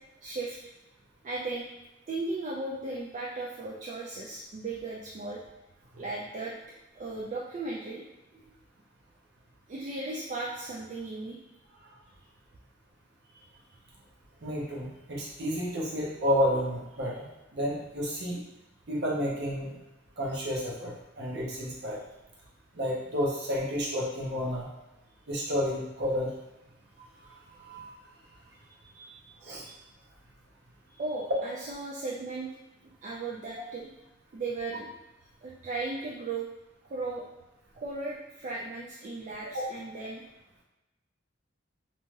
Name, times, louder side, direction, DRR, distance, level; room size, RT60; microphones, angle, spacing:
voice 1, 0.2-0.6 1.2-1.7 2.1-5.4 5.9-6.5 6.9-8.0 8.3-8.5 9.7-11.4 28.7-29.7 31.0-32.5 33.0-33.9 34.3-34.9 35.4-36.5 36.9-37.3 37.8-40.2, right 3 dB, 40° right, -5 dB, 0.3 m, -36 dB
voice 2, 14.4-17.3 17.5-18.4 18.9-19.7 20.2-22.0 22.7-24.7 25.3-26.3 27.6-27.9 29.4-29.6 39.5-39.6, equal, 60° right, -4 dB, 0.7 m, -31 dB
2.7 x 2.2 x 3.1 m, 0.96 s
head